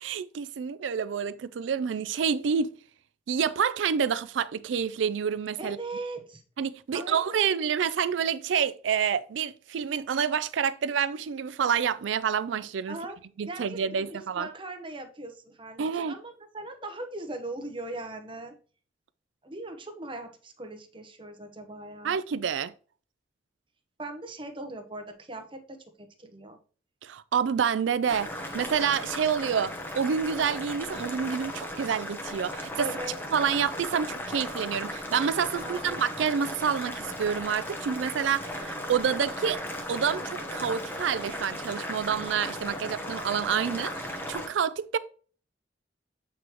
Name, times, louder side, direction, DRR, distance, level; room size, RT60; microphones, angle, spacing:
voice 1, 0.0-2.7 3.3-5.8 6.6-13.0 13.4-14.5 15.8-16.2 22.0-22.7 27.0-32.9 33.3-39.6 39.9-45.0, right 7 dB, 90° right, 0.4 m, -28 dB
voice 2, 5.6-6.4 6.9-7.6 12.9-13.2 13.5-18.5 19.4-22.2 24.0-26.6 32.8-33.2 35.6-36.1, right 2 dB, 30° right, 1.0 m, -40 dB
Boiling, 28.1-44.5, left 1 dB, 10° left, 1.0 m, -36 dB
8.3 x 4.6 x 3.0 m
head